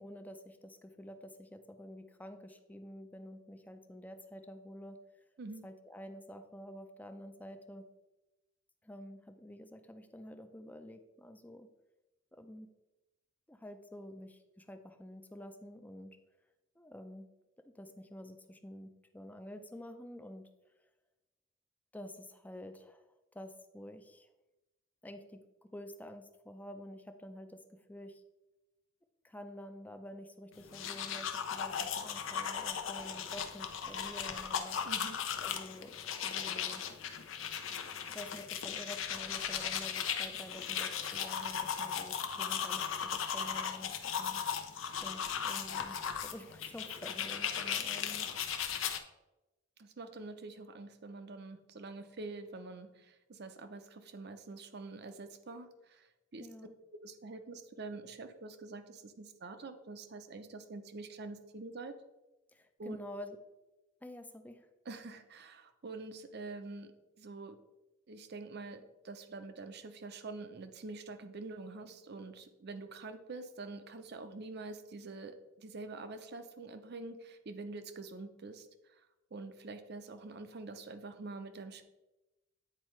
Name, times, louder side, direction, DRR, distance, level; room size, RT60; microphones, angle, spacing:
voice 1, 0.0-5.0 5.6-7.9 8.8-11.7 12.3-12.7 13.5-16.2 16.8-17.3 17.6-20.5 21.9-23.0 23.3-24.3 25.0-28.2 29.2-34.8 35.4-35.9 36.2-36.8 38.1-44.4 45.0-48.3 48.5-48.6 56.4-56.7 62.5-63.4 64.0-64.7, left 1 dB, 10° left, 8 dB, 0.4 m, -49 dB
sound 1, 30.6-49.0, left 7 dB, 80° left, 0.6 m, -37 dB
voice 2, 34.9-35.2 49.8-56.5 57.0-61.9 62.8-63.0 64.9-66.9 67.2-67.6 68.1-79.0 79.3-81.8, right 3 dB, 55° right, 9 dB, 0.6 m, -46 dB
8.9 x 4.4 x 3.1 m, 1.0 s
head